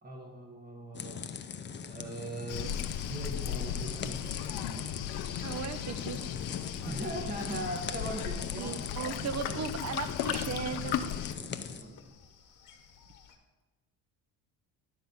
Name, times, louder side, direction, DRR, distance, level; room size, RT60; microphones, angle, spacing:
voice 1, 0.0-1.3 1.8-5.0 6.8-9.7 10.0-10.1 11.4-12.0, right 1 dB, 25° right, 2 dB, 1.4 m, -40 dB
sound 1, 0.9-11.8, left 6 dB, 30° left, 0.6 m, -41 dB
Waves surf, 2.5-11.3, left 10 dB, 75° left, 0.8 m, -36 dB
sound 2, 5.0-13.4, left 6 dB, 55° left, 1.5 m, -52 dB
voice 2, 5.4-6.2 8.6-11.0, right 7 dB, 45° right, 12 dB, 0.8 m, -37 dB
11.5 x 4.0 x 7.2 m, 1.1 s
cardioid pair, 100°, 38 cm